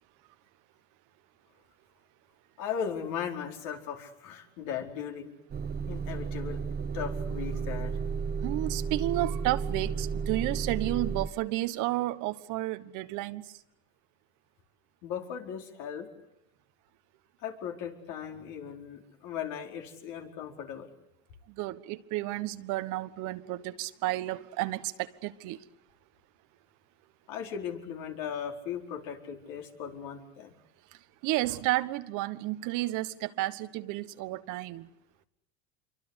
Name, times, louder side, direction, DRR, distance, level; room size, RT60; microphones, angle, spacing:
voice 1, 2.6-5.3 5.9-6.6 6.9-8.0 15.0-16.1 17.4-20.9 27.3-30.5, left 8 dB, 65° left, 4.8 m, -37 dB
Motor vehicle (road) / Engine starting / Idling, 5.5-11.3, right 5 dB, 30° right, 1.5 m, -33 dB
voice 2, 8.4-13.4 21.6-24.9 25.2-25.6 31.2-34.9, right 17 dB, 60° right, 1.4 m, -31 dB
26.5 x 24.0 x 8.2 m
supercardioid pair, 100°, 34 cm